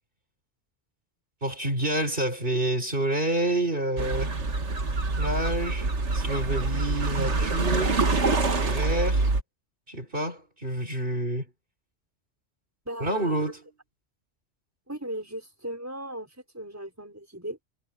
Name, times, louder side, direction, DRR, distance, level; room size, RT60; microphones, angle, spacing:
voice 1, 1.4-4.3 5.2-8.0 8.6-9.3 9.9-11.5 13.0-13.6, right 1 dB, 50° right, 5.5 m, -28 dB
sound 1, 4.0-9.4, right 3 dB, 70° right, 2.1 m, -26 dB
voice 2, 12.9-13.5 14.9-16.3 16.5-17.6, right 1 dB, 15° right, 5.4 m, -37 dB
omnidirectional pair, 1.2 m